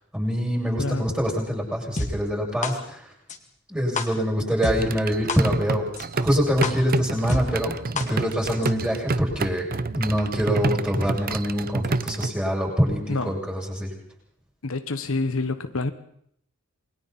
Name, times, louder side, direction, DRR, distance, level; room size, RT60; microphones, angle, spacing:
voice 1, 0.1-3.1 3.7-5.9 6.2-9.7 9.9-13.9, equal, 5° right, 7.5 m, -25 dB
voice 2, 0.8-1.1 13.1-13.4 14.6-15.9, left 3 dB, 75° left, 1.2 m, -27 dB
sound 1, 2.0-2.1 2.6-2.7 3.3-3.4 4.0-4.1 4.6-4.7 5.3-5.4 6.0-6.1 6.6-6.7 7.3-7.4 8.0-8.1 8.6-8.7, left 3 dB, 35° left, 2.2 m, -26 dB
sound 2, 4.8-12.3, right 3 dB, 45° right, 0.7 m, -29 dB
28.0 x 22.0 x 4.3 m
head